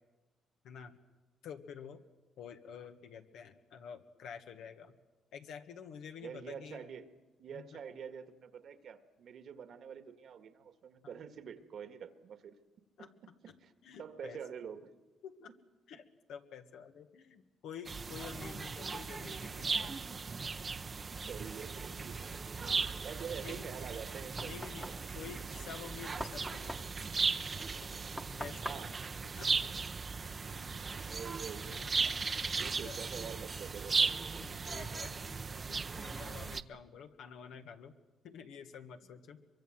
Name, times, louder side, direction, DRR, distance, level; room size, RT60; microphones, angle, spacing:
voice 1, 0.6-1.0 1.4-2.0 2.4-5.0 5.3-6.8 7.5-7.8 11.0-11.1 13.0-13.1 13.8-14.4 15.2-15.5 15.9-20.0 22.1-22.2 23.4-23.8 24.4-24.9 25.2-27.0 28.1-28.6 29.4-29.5 30.4-30.7 31.6-31.9 32.8-33.0 34.4-38.0 38.2-39.4, left 7 dB, 80° left, 6 dB, 1.7 m, -49 dB
voice 2, 6.2-7.1 7.4-12.6 13.0-13.1 13.6-13.7 14.0-14.9 21.3-24.5 24.8-25.9 28.6-29.0 29.4-29.5 30.6-32.1 32.5-34.1, right 7 dB, 65° right, 9 dB, 1.8 m, -47 dB
sound 1, 17.8-36.6, right 4 dB, 35° right, 0.8 m, -37 dB
Knock, 24.4-30.3, equal, ahead, 1.2 m, -47 dB
23.5 x 23.5 x 7.8 m, 1.2 s
cardioid pair, 90°, 0 cm